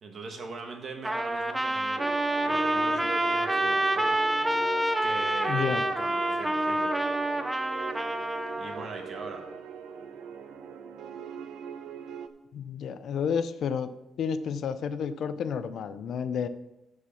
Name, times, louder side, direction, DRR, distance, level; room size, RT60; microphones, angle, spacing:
voice 1, 0.0-2.1 2.4-4.2 5.0-6.9 8.6-9.4, right 4 dB, 40° right, 3 dB, 1.5 m, -41 dB
Trumpet, 1.0-8.9, right 1 dB, 5° right, 0.5 m, -27 dB
sound 1, 2.0-12.3, right 6 dB, 75° right, 0.9 m, -40 dB
voice 2, 5.5-5.8 12.5-13.9 14.2-16.5, left 7 dB, 55° left, 12 dB, 0.5 m, -30 dB
13.5 x 4.8 x 5.8 m, 0.92 s
cardioid pair, 180°, 0 cm